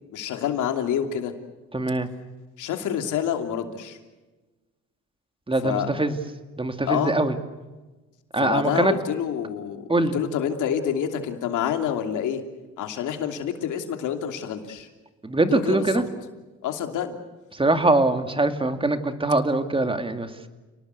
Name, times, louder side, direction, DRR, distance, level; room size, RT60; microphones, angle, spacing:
voice 1, 0.1-1.3 2.6-4.0 5.6-5.9 6.9-7.1 8.4-12.4 12.8-14.9 15.5-16.0 16.6-17.2, left 9 dB, 85° left, 6 dB, 3.0 m, -27 dB
voice 2, 1.7-2.1 5.5-6.2 6.6-7.4 8.3-8.9 9.9-10.2 15.2-16.0 17.5-20.5, right 2 dB, 15° right, 8 dB, 2.4 m, -23 dB
29.5 x 19.5 x 8.2 m, 1.2 s
cardioid pair, 90°, 30 cm